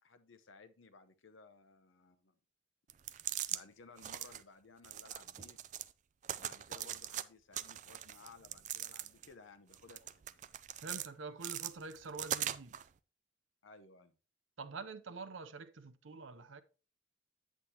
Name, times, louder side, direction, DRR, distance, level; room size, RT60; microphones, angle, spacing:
voice 1, 0.0-2.4 3.5-5.6 6.3-10.3 13.6-14.2, left 3 dB, 80° left, 0.8 m, -58 dB
sound 1, 2.9-3.6 4.0-4.4 4.8-5.9 6.2-7.2 7.5-9.3 9.7-11.1 11.4-12.8, right 11 dB, 40° right, 0.3 m, -41 dB
voice 2, 10.8-12.8 14.6-16.6, right 4 dB, 85° right, 0.7 m, -46 dB
8.3 x 8.1 x 2.9 m
head